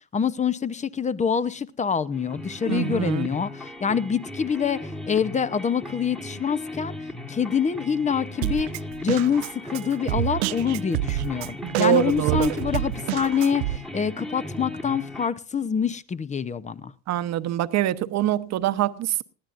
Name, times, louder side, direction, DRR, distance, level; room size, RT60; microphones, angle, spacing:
voice 1, 0.1-4.8 5.1-6.9 7.3-8.7 9.0-16.9, left 7 dB, 20° left, 0.8 m, -26 dB
sound 1, 2.1-15.3, left 2 dB, ahead, 1.5 m, -37 dB
voice 2, 2.7-3.3 11.6-12.5 17.1-19.2, right 12 dB, 45° right, 1.0 m, -24 dB
Drum kit, 8.4-13.8, right 17 dB, 65° right, 0.5 m, -29 dB
20.0 x 14.5 x 2.6 m
supercardioid pair, 100°, 37 cm